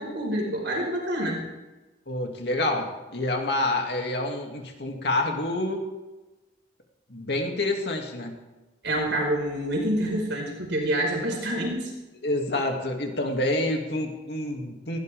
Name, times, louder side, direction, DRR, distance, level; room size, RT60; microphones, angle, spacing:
voice 1, 0.0-1.4 8.8-11.9, right 1 dB, 70° right, -1 dB, 5.4 m, -27 dB
voice 2, 2.1-5.9 7.1-8.4 12.2-15.0, left 1 dB, 60° left, 2 dB, 2.5 m, -28 dB
19.5 x 17.0 x 3.7 m, 1.1 s
head